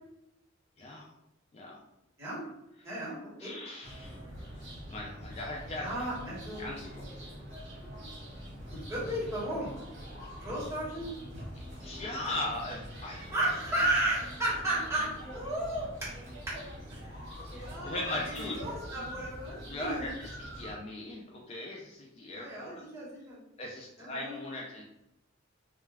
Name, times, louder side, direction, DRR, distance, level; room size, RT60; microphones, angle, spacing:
voice 1, 0.8-1.1 1.5-1.8 2.8-2.9 3.4-6.1 6.6-7.1 11.8-13.4 17.0-17.1 17.8-18.6 19.3-19.4 19.7-22.8 23.6-24.8, left 2 dB, 30° left, -2 dB, 0.3 m, -39 dB
voice 2, 2.8-3.5 5.8-6.7 8.9-9.7 10.4-11.1 13.3-16.1 16.5-16.6 16.9-17.1 17.5-20.1 22.3-23.4 24.0-24.4, right 1 dB, 15° right, -8 dB, 1.1 m, -34 dB
sound 1, 3.8-20.8, equal, 60° right, 1.0 m, -44 dB
2.3 x 2.2 x 3.2 m, 0.85 s
head